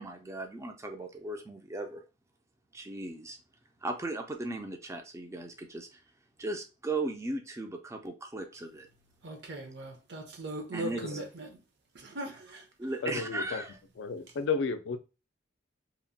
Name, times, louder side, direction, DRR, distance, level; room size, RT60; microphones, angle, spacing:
voice 1, 0.0-2.0 2.7-3.4 3.8-6.0 6.4-8.9 10.7-11.0 12.8-13.7, right 2 dB, 15° right, 0.3 m, -37 dB
voice 2, 9.2-11.6 11.9-12.7, right 1 dB, 60° right, 0.7 m, -39 dB
voice 3, 13.0-13.6 14.0-15.0, left 4 dB, 65° left, 0.3 m, -33 dB
2.9 x 2.1 x 2.6 m
head